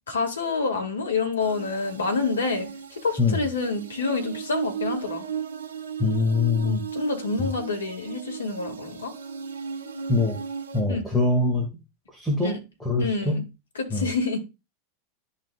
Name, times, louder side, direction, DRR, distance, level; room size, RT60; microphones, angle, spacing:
voice 1, 0.1-2.7 2.9-5.3 6.6-9.1 10.9-11.0 12.4-12.6 13.0-13.4 13.8-14.4, left 4 dB, 75° left, 1.7 m, -27 dB
sound 1, 1.4-10.8, right 7 dB, 75° right, 1.3 m, -36 dB
voice 2, 6.0-6.8 7.4-7.5 10.1-10.4 10.7-11.7 12.1-13.4 13.9-14.1, left 3 dB, ahead, 1.9 m, -23 dB
11.5 x 4.0 x 2.3 m
figure-of-eight pair, 85°, 0 cm